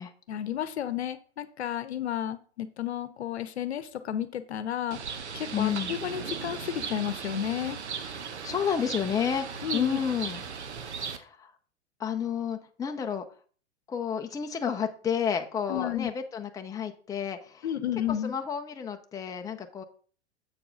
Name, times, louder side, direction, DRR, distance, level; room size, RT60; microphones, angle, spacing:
voice 1, 0.3-5.0 5.3-7.8 9.6-10.0 15.7-16.1 17.6-18.3, left 10 dB, 70° left, 12 dB, 0.9 m, -32 dB
Bird, 4.9-11.2, right 6 dB, 80° right, 1.0 m, -37 dB
voice 2, 5.5-6.0 8.2-10.4 10.9-11.5 12.0-13.2 13.9-17.7 18.2-19.8, left 7 dB, 10° left, 5 dB, 0.7 m, -31 dB
7.6 x 4.7 x 5.0 m, 0.42 s
figure-of-eight pair, 100°, 34 cm